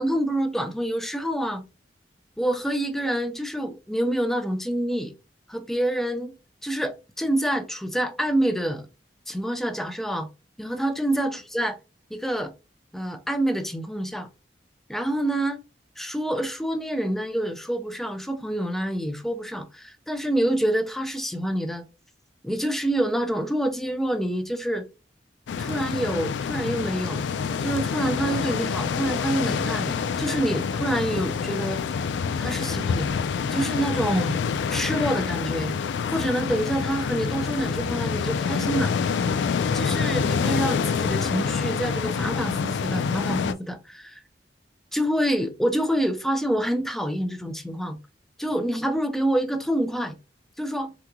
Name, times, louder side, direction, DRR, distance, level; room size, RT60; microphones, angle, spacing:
voice 1, 0.0-1.6 2.4-5.1 5.5-6.3 6.6-8.9 9.3-10.3 10.6-11.7 12.1-12.5 12.9-14.3 14.9-15.6 16.0-21.8 22.4-24.9 25.6-27.2 27.6-31.8 32.4-33.2 33.5-34.4 34.7-35.8 36.1-38.9 39.7-44.2 44.9-48.0 48.4-50.1 50.6-50.9, right 1 dB, ahead, 0.4 m, -27 dB
sound 1, 25.5-43.5, left 6 dB, 85° left, 0.3 m, -27 dB
3.6 x 2.9 x 2.2 m
head